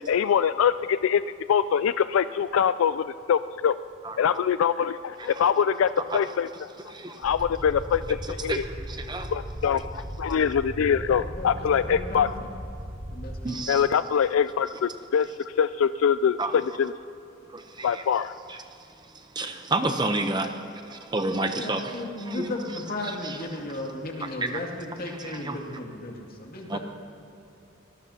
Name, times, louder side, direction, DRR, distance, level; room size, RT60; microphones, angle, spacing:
voice 1, 0.1-1.2 1.5-3.8 4.2-6.5 7.2-8.6 9.3-12.3 13.7-15.3 15.6-16.9 17.8-18.3, left 7 dB, 75° left, 13 dB, 0.3 m, -24 dB
voice 2, 6.8-7.2 8.2-9.3 13.4-13.9 14.7-14.8 16.4-16.6 17.5-18.0 18.5-21.9 22.2-22.5 23.0-23.4 24.2-24.3 25.2-25.6 26.7-26.8, right 2 dB, 20° right, 6 dB, 0.8 m, -31 dB
sound 1, 7.2-13.4, equal, 35° right, 2.4 m, -37 dB
voice 3, 10.9-12.5 13.1-13.6 21.6-26.8, left 1 dB, 45° left, -1 dB, 2.4 m, -35 dB
24.5 x 19.0 x 2.9 m, 2.8 s
head